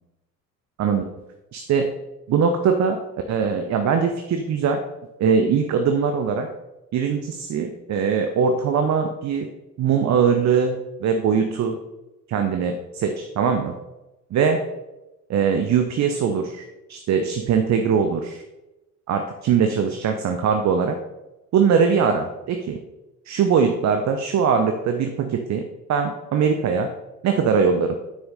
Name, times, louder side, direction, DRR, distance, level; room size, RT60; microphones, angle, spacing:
voice 1, 1.5-1.9 2.3-3.0 3.3-4.8 5.2-6.5 6.9-9.5 9.8-11.8 12.3-13.7 14.3-14.6 15.3-16.6 16.9-18.4 19.1-21.0 21.5-22.8 23.3-25.6 25.9-26.9 27.2-28.0, right 6 dB, 35° right, 6 dB, 0.9 m, -21 dB
9.2 x 6.2 x 4.1 m, 1.0 s
figure-of-eight pair, 60°, 48 cm